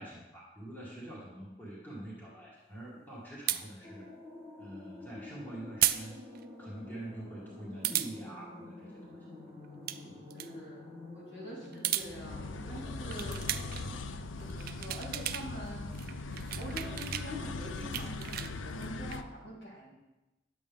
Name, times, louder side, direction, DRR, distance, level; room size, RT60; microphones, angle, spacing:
voice 1, 0.0-4.1 4.6-6.2 6.6-9.2, right 1 dB, 10° left, -7 dB, 1.8 m, -45 dB
sound 1, 3.5-3.6 5.8-6.0 6.3-6.4 7.8-8.1 9.6-10.0 10.3-10.5 11.6-12.1 13.1-13.8 14.4-15.5 15.7-17.3 17.7-19.2, right 13 dB, 50° right, 0.4 m, -33 dB
sound 2, 3.8-14.0, left 2 dB, 40° left, 1.9 m, -49 dB
voice 2, 10.0-10.8 11.1-13.3 14.4-20.0, equal, 65° left, -6 dB, 3.6 m, -45 dB
sound 3, 12.0-19.2, left 3 dB, 90° left, 0.5 m, -40 dB
10.5 x 7.6 x 3.5 m, 1.0 s
head